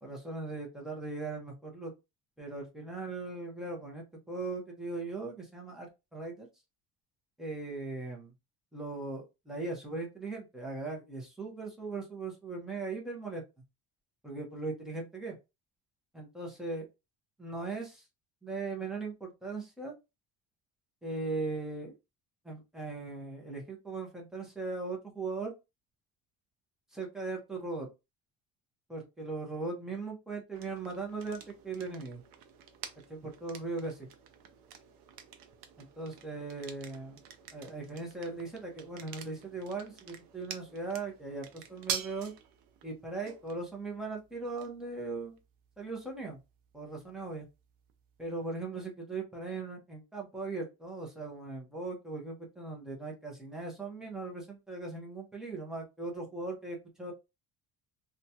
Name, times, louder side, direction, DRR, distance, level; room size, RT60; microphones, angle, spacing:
voice 1, 0.0-1.9 2.4-6.5 7.4-8.3 8.7-13.4 14.2-15.4 16.1-16.9 17.4-18.0 18.4-19.9 21.0-21.9 22.4-25.5 26.9-27.9 28.9-32.2 33.1-34.1 35.8-37.2 37.5-42.3 42.8-45.4 45.8-46.4 46.7-47.5 48.2-57.1, right 3 dB, ahead, -1 dB, 0.6 m, -39 dB
sound 1, 30.5-48.3, right 7 dB, 65° right, 0.6 m, -47 dB
2.9 x 2.3 x 2.6 m, 0.25 s
cardioid pair, 175°, 36 cm